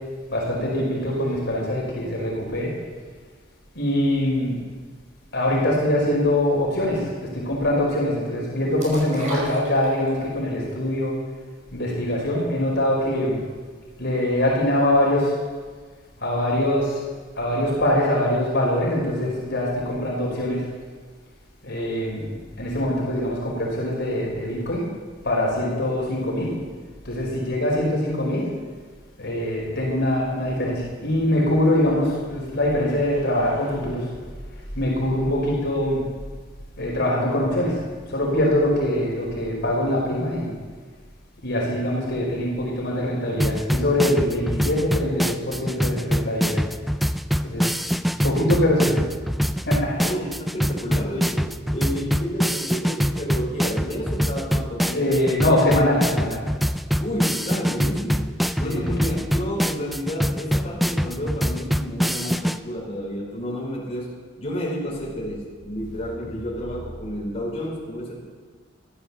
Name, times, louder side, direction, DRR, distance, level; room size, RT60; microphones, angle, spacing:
voice 1, 0.3-2.7 3.7-4.6 5.3-11.1 11.7-13.4 14.0-15.3 16.2-17.0 17.4-20.6 21.6-22.3 22.6-24.8 25.2-26.5 27.0-28.5 29.2-34.0 34.7-36.0 36.8-37.7 38.1-40.5 41.4-46.6 47.4-47.6 48.2-49.0 49.7-49.9 54.9-56.4 58.6-58.9, left 1 dB, 60° left, -3 dB, 4.5 m, -23 dB
sound 1, 8.8-10.3 10.7-10.8, equal, 40° right, 5.4 m, -32 dB
sound 2, 43.4-62.6, equal, ahead, 0.4 m, -24 dB
voice 2, 50.0-55.1 57.0-68.2, equal, 30° left, -5 dB, 4.8 m, -31 dB
14.5 x 12.0 x 6.9 m, 1.5 s
head